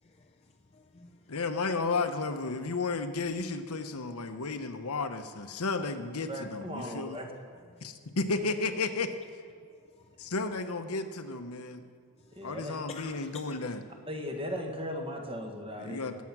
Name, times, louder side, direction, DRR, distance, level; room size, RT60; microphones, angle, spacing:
voice 1, 0.0-1.4 7.7-7.9 9.8-10.3 12.2-12.5 12.9-13.6, left 4 dB, 25° left, 2 dB, 0.5 m, -50 dB
voice 2, 1.3-7.2 7.8-9.1 10.2-11.8 12.4-13.8 15.8-16.2, left 3 dB, 80° left, 7 dB, 1.0 m, -33 dB
voice 3, 6.3-7.3 12.4-12.8 14.1-16.0, equal, 25° right, 2 dB, 1.6 m, -37 dB
21.0 x 8.4 x 6.1 m, 2.2 s
head